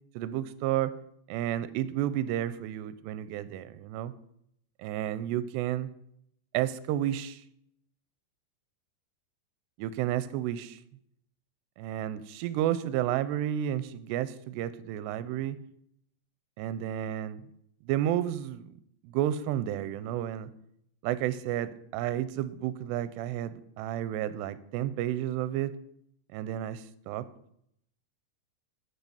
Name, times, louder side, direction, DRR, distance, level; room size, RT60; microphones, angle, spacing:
voice 1, 0.2-0.9 1.3-4.1 4.8-5.9 6.5-7.4 9.8-10.8 11.8-15.6 16.6-17.4 17.9-18.7 19.0-20.5 21.0-25.7 26.3-27.3, right 12 dB, 85° right, 14 dB, 2.7 m, -31 dB
9.0 x 8.6 x 5.4 m, 0.73 s
omnidirectional pair, 4.9 m